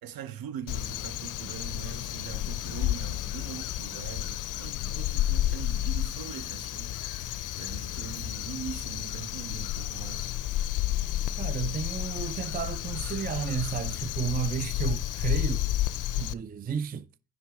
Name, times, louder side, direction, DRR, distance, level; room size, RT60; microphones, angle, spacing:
voice 1, 0.0-10.3, right 9 dB, 70° right, 0.8 m, -42 dB
Crow, 0.7-16.3, left 13 dB, 55° left, 0.5 m, -31 dB
voice 2, 11.4-15.7 16.2-17.1, right 7 dB, 25° right, 0.4 m, -32 dB
10.0 x 3.7 x 5.9 m
supercardioid pair, 60°, 37 cm